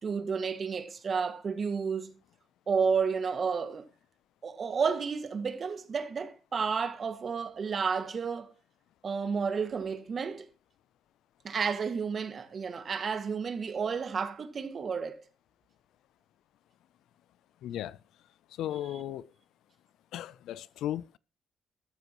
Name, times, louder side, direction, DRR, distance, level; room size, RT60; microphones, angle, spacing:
voice 1, 0.0-2.1 2.7-3.8 4.4-8.5 9.0-10.5 11.4-15.2 18.9-19.0, right 5 dB, 45° right, 1.8 m, -31 dB
voice 2, 17.6-18.0 18.6-19.3 20.1-21.2, left 12 dB, 85° left, 0.5 m, -36 dB
14.0 x 13.5 x 3.0 m
cardioid pair, 90°, 0 cm